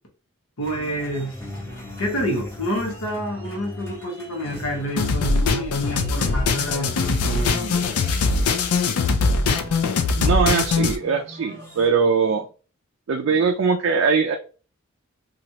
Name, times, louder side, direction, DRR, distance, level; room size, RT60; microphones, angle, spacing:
voice 1, 0.6-1.3 2.0-7.8, equal, 70° left, 1.0 m, -28 dB
sound 1, 0.6-11.9, equal, 10° left, 0.8 m, -39 dB
sound 2, 5.0-11.0, left 4 dB, 90° left, 0.4 m, -21 dB
voice 2, 10.1-12.5 13.1-14.4, right 5 dB, 60° right, 0.3 m, -21 dB
3.0 x 2.4 x 2.7 m
head